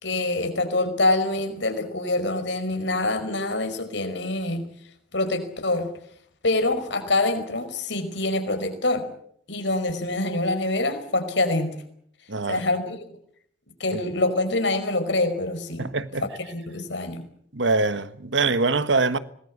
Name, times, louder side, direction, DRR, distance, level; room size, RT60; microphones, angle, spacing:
voice 1, 0.0-4.7 5.1-5.9 6.4-9.1 9.5-11.7 12.5-13.0 13.8-15.8 16.5-17.2, left 2 dB, 75° left, 5.1 m, -25 dB
voice 2, 12.3-12.6 13.9-14.0 15.8-16.3 17.5-19.2, right 3 dB, 75° right, 1.3 m, -23 dB
25.0 x 20.0 x 8.4 m
head